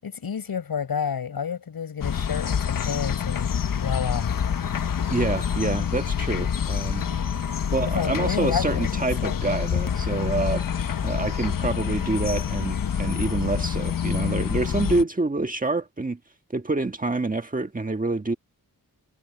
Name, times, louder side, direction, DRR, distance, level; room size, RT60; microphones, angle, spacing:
voice 1, 0.0-3.5 3.8-4.4 7.9-8.9 9.2-9.4, left 7 dB, 85° left, 7.0 m, -30 dB
sound 1, 2.0-15.0, left 8 dB, 70° left, 1.1 m, -27 dB
voice 2, 5.1-7.1 7.7-10.7 11.0-16.2 16.5-18.3, right 3 dB, 25° right, 1.6 m, -27 dB
wide cardioid pair, 130°, 35 cm